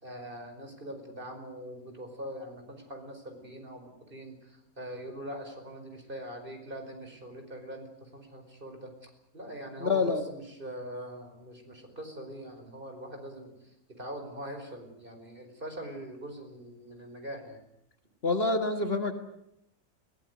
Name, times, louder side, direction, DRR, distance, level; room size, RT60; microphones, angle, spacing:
voice 1, 0.0-17.6, right 1 dB, 35° right, 4 dB, 5.2 m, -43 dB
voice 2, 9.8-10.2 18.2-19.1, left 3 dB, 45° left, 6 dB, 1.9 m, -27 dB
22.0 x 18.5 x 9.6 m, 0.81 s
omnidirectional pair, 1.5 m